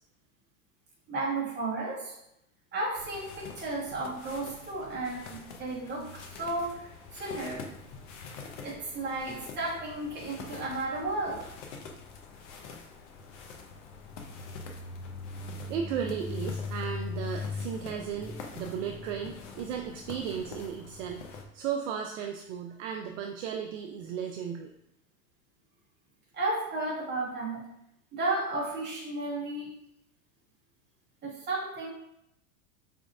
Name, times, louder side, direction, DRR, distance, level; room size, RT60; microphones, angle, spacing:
voice 1, 1.1-2.2 2.7-7.7 8.6-11.4 26.3-27.7 28.1-29.7 31.2-31.9, right 2 dB, 25° right, -4 dB, 1.4 m, -33 dB
sound 1, 3.0-21.4, left 4 dB, 55° left, 0.8 m, -42 dB
voice 2, 15.7-24.7, right 8 dB, 60° right, 3 dB, 0.5 m, -35 dB
4.9 x 3.5 x 2.4 m, 0.81 s
hypercardioid pair, 110°, 43 cm